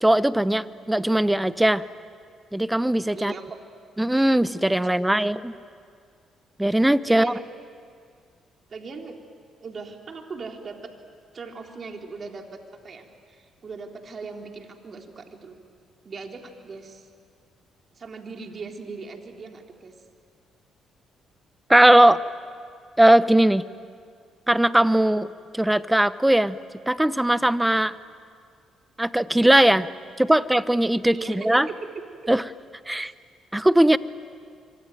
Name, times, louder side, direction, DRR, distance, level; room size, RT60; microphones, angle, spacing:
voice 1, 0.0-1.8 2.5-3.3 4.0-5.5 6.6-7.3 21.7-22.2 23.0-23.6 24.5-25.3 25.5-26.6 26.9-27.9 29.0-29.9 30.2-31.7 32.3-32.4 32.9-33.1 33.5-34.0, right 1 dB, 10° right, 16 dB, 0.9 m, -19 dB
voice 2, 3.1-3.6 5.0-5.3 7.1-7.4 8.7-9.2 9.6-10.9 11.3-15.6 16.0-17.1 18.0-19.9 31.1-31.7 33.0-33.1, right 4 dB, 50° right, 3 dB, 3.6 m, -39 dB
26.0 x 24.5 x 9.2 m, 2.1 s
hypercardioid pair, 55°, 0 cm